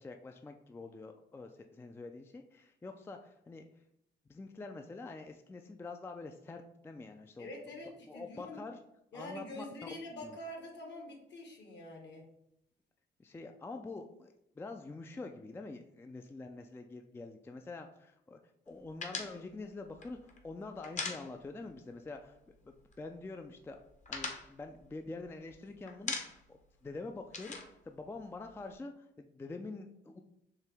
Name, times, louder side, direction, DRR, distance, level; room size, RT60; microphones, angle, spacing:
voice 1, 0.0-3.6 4.3-7.5 8.1-8.8 9.1-9.9 10.2-10.4 13.2-18.4 18.7-22.4 22.6-23.8 24.1-30.2, left 3 dB, 10° left, 5 dB, 0.3 m, -46 dB
voice 2, 7.4-8.6 9.1-12.3, left 1 dB, 60° left, 1 dB, 1.4 m, -46 dB
sound 1, 19.0-21.8 22.1-22.2 22.5-23.2 23.6-25.5 25.9-26.6 26.9-28.7, left 4 dB, 35° left, 0.8 m, -41 dB
4.6 x 2.9 x 3.4 m, 0.77 s
cardioid pair, 90°, 20 cm